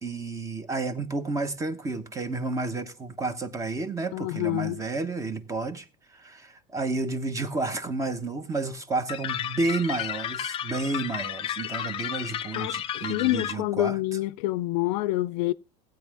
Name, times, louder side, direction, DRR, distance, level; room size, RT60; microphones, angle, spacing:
voice 1, 0.0-5.9 6.1-14.0, right 3 dB, 15° right, 1.0 m, -31 dB
voice 2, 4.1-4.8 12.5-15.5, left 17 dB, 70° left, 0.6 m, -27 dB
sound 1, 9.1-13.5, left 10 dB, 25° left, 0.5 m, -33 dB
15.0 x 9.0 x 3.5 m
cardioid pair, 155°, 21 cm